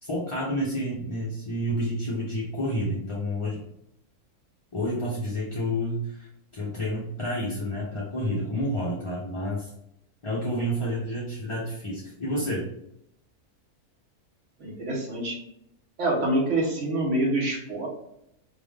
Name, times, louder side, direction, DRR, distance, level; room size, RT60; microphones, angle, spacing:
voice 1, 0.0-3.6 4.7-6.3 6.5-9.7 10.2-12.7, equal, 35° left, -6 dB, 0.5 m, -29 dB
voice 2, 14.6-15.4 16.0-17.9, right 1 dB, 55° right, -2 dB, 1.4 m, -26 dB
4.6 x 2.5 x 3.5 m, 0.77 s
omnidirectional pair, 1.6 m